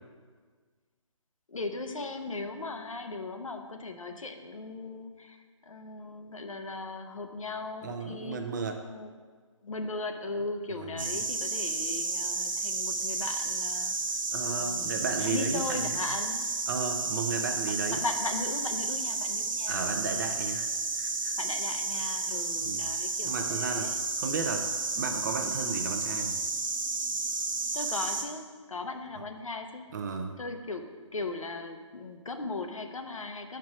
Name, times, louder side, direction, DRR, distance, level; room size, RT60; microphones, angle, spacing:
voice 1, 1.5-8.4 8.8-9.1 9.6-14.2 14.5-16.5 17.8-19.8 20.1-20.4 21.4-24.0 27.7-29.8 30.4-33.6, left 3 dB, 90° left, 6 dB, 0.8 m, -38 dB
voice 2, 7.8-8.8 10.7-11.2 14.3-16.0 16.7-18.0 19.7-21.4 22.6-22.8 23.2-23.9 24.2-24.7 25.0-26.4 29.9-30.4, right 5 dB, 35° right, 5 dB, 0.6 m, -34 dB
sound 1, 11.0-28.2, right 3 dB, 80° right, 1.0 m, -32 dB
6.1 x 4.6 x 6.0 m, 1.5 s
figure-of-eight pair, 150°, 17 cm